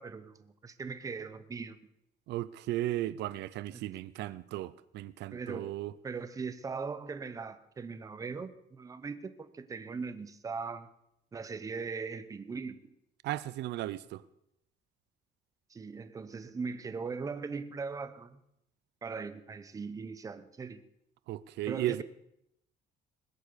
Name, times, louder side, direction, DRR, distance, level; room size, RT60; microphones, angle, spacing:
voice 1, 0.0-1.8 3.7-3.8 5.3-5.7 6.0-10.9 11.3-12.9 15.7-18.4 19.0-20.8 21.7-22.0, right 5 dB, 20° right, 0.8 m, -40 dB
voice 2, 2.3-5.9 13.2-14.2 21.3-22.0, right 15 dB, 75° right, 0.6 m, -35 dB
20.5 x 8.3 x 6.7 m
cardioid pair, 170°, 18 cm